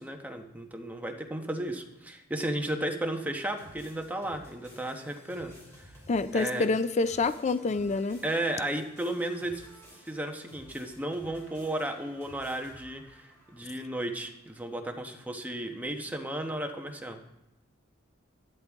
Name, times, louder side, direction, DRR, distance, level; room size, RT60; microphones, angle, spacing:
voice 1, 0.0-5.9 6.3-6.7 8.2-9.7 10.0-17.2, right 1 dB, 10° right, 3 dB, 1.0 m, -34 dB
sound 1, 3.5-14.6, equal, 15° left, 4.8 m, -54 dB
voice 2, 6.1-8.2, left 3 dB, 35° left, 13 dB, 0.4 m, -27 dB
13.0 x 12.0 x 3.6 m, 0.92 s
head